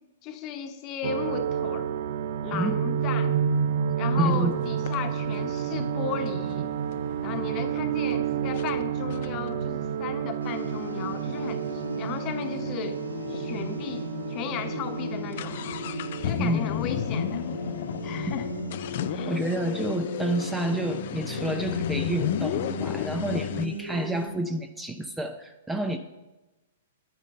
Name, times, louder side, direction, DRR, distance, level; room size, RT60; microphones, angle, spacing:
voice 1, 0.2-1.9 2.4-3.4 4.0-6.7 7.2-13.0 13.3-15.6 16.2-17.5 18.0-18.5 19.1-19.4, left 8 dB, 35° left, 7 dB, 1.2 m, -35 dB
sound 1, 1.0-19.5 19.8-20.8, right 8 dB, 60° right, 0.6 m, -30 dB
voice 2, 4.2-4.6 16.4-16.7 19.3-26.0, right 1 dB, 10° right, 7 dB, 0.7 m, -29 dB
sound 2, 4.3-4.4 4.9-7.5 8.1-8.2 8.6-8.7 9.1-12.8 13.1-13.2 13.3-13.5 14.1-14.2 14.5-23.7, left 11 dB, 55° left, 0.5 m, -34 dB
sound 3, 10.4-24.3, left 1 dB, 90° left, 1.7 m, -36 dB
10.5 x 8.7 x 5.5 m, 1.1 s
hypercardioid pair, 120°, 0 cm